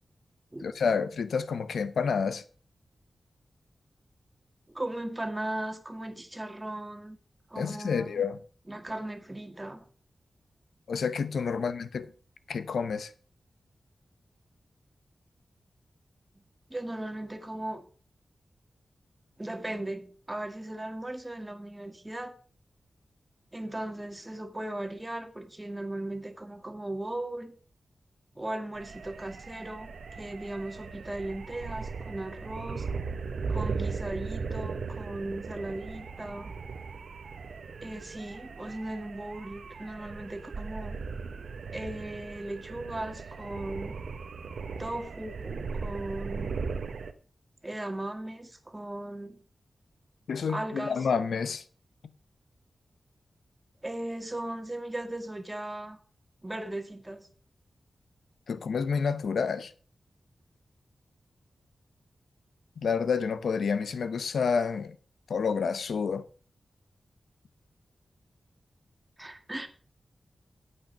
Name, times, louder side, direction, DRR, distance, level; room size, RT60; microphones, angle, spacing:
voice 1, 0.6-2.4 7.6-8.4 10.9-12.1 12.5-13.1 50.3-51.6 58.5-59.7 62.8-65.0 65.3-66.2, left 5 dB, 90° left, 0.8 m, -29 dB
voice 2, 4.7-7.2 7.5-8.2 8.7-9.8 11.5-11.7 16.3-16.4 16.7-17.9 19.4-22.3 23.5-27.5 28.4-32.9 33.5-36.5 37.8-41.0 41.7-44.0 44.8-46.6 47.6-49.4 50.5-51.1 53.8-56.0 56.4-57.3 69.2-69.7, right 1 dB, 20° right, 1.8 m, -37 dB
sound 1, 28.7-47.1, right 5 dB, 85° right, 1.0 m, -38 dB
9.0 x 8.2 x 5.5 m
cardioid pair, 65°, 0 cm